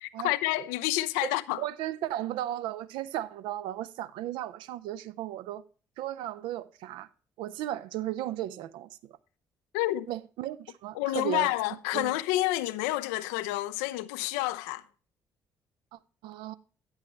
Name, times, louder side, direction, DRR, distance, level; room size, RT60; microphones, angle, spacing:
voice 1, 0.0-1.6 9.7-10.1 11.0-14.8, left 17 dB, 65° left, 0.4 m, -29 dB
voice 2, 1.6-5.6 6.0-7.1 7.4-8.9 10.1-11.5 11.9-12.1 15.9-16.5, right 13 dB, 60° right, 0.5 m, -35 dB
9.5 x 8.7 x 3.0 m
figure-of-eight pair, 45°, 9 cm